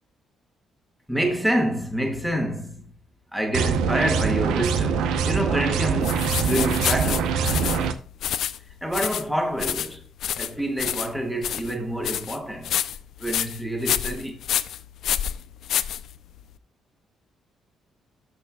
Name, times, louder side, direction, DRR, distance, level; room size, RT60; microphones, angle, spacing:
voice 1, 1.1-2.9 3.3-8.1 8.8-10.0 10.4-12.8 13.2-14.4, right 1 dB, 5° right, 1.7 m, -27 dB
sound 1, 3.5-7.9, right 6 dB, 90° right, 0.8 m, -24 dB
sound 2, 6.0-16.5, left 10 dB, 75° left, 0.5 m, -29 dB
13.0 x 6.1 x 2.3 m
cardioid pair, 90°, 0 cm